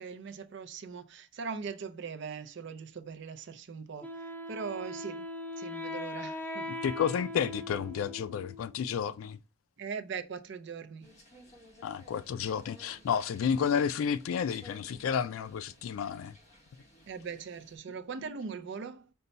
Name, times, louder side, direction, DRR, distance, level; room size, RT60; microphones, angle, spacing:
voice 1, 0.0-5.2 5.6-6.8 9.8-11.1 17.1-19.1, right 5 dB, 60° right, 0.5 m, -40 dB
Wind instrument woodwind instrument, 4.0-8.8, left 1 dB, 10° left, 0.4 m, -40 dB
voice 2, 6.8-9.4 11.8-16.3, left 7 dB, 80° left, 0.3 m, -31 dB
sound 1, 11.0-17.8, equal, 35° left, 1.3 m, -57 dB
5.3 x 2.2 x 3.9 m
head